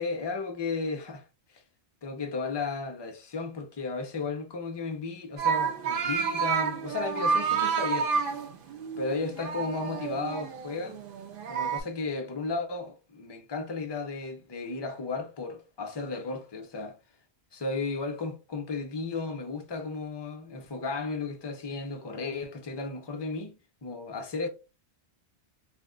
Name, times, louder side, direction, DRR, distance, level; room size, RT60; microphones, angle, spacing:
voice 1, 0.0-1.6 2.0-8.5 9.0-11.0 11.5-17.0 17.6-24.5, left 4 dB, 40° left, 0.3 m, -34 dB
sound 1, 5.4-11.8, right 6 dB, 60° right, 0.7 m, -30 dB
2.4 x 2.1 x 3.6 m
omnidirectional pair, 1.2 m